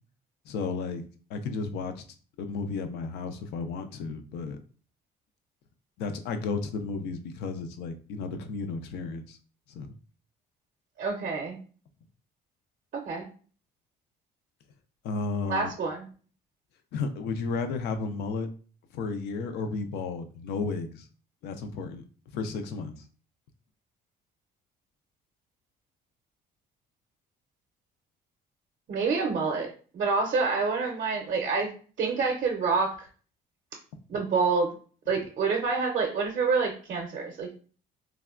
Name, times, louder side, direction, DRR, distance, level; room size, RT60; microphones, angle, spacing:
voice 1, 0.5-1.0 1.3-2.0 2.4-4.6 6.0-9.4 9.7-9.9 15.0-15.7 16.9-18.5 18.9-21.0 21.4-22.0 22.3-22.9, left 4 dB, 80° left, 8 dB, 0.4 m, -33 dB
voice 2, 11.0-11.6 12.9-13.3 15.5-16.0 28.9-31.7 32.0-33.0 34.1-34.7 35.1-37.5, right 4 dB, 50° right, 1 dB, 0.5 m, -27 dB
3.4 x 2.1 x 2.3 m, 0.40 s
cardioid pair, 110°, 17 cm